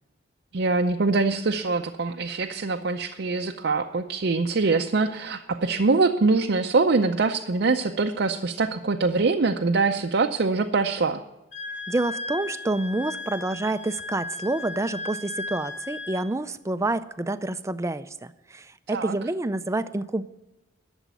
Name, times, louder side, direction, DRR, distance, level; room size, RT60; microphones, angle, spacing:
voice 1, 0.5-11.2 18.9-19.2, right 3 dB, 60° right, 4 dB, 0.6 m, -23 dB
Wind instrument woodwind instrument, 11.5-16.3, left 3 dB, 40° left, 2.8 m, -36 dB
voice 2, 11.9-20.2, right 2 dB, 15° right, 13 dB, 0.4 m, -28 dB
12.5 x 7.1 x 9.1 m, 0.98 s
head